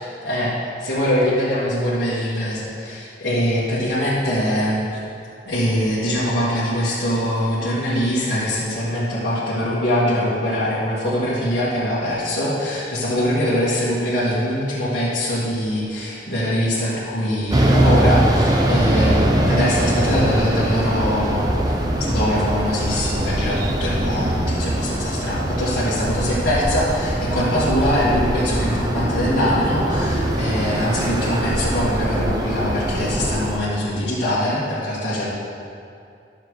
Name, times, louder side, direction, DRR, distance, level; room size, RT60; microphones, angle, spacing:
voice 1, 0.0-4.8 5.5-35.3, equal, 60° left, -11 dB, 1.9 m, -23 dB
sound 1, 17.5-33.6, right 1 dB, 20° right, 0.7 m, -22 dB
12.5 x 6.7 x 3.2 m, 2.5 s
head